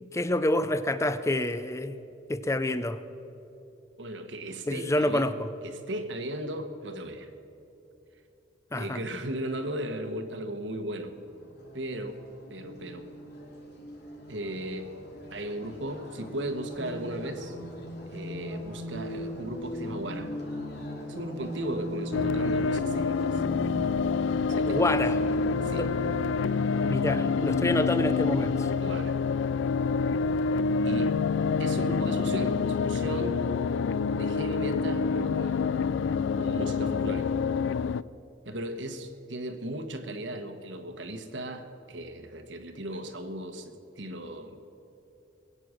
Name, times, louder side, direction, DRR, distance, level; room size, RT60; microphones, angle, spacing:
voice 1, 0.0-2.0 2.3-3.0 4.7-5.5 8.7-9.0 24.7-25.2 25.7-25.9 26.8-28.7, left 1 dB, 15° left, 12 dB, 0.5 m, -27 dB
voice 2, 4.0-5.3 5.6-7.3 8.7-11.1 11.7-12.2 12.5-13.1 14.3-15.0 15.3-17.6 18.1-20.3 21.0-23.4 24.5-24.9 25.6-25.9 28.8-29.2 30.8-31.1 31.6-33.4 34.1-35.7 36.3-37.3 38.4-44.6, right 1 dB, 75° right, 6 dB, 1.3 m, -36 dB
sound 1, 10.8-27.6, equal, 60° left, 2.4 m, -39 dB
sound 2, 22.1-38.0, left 5 dB, 80° left, 0.3 m, -27 dB
21.0 x 8.8 x 6.4 m, 2.9 s
head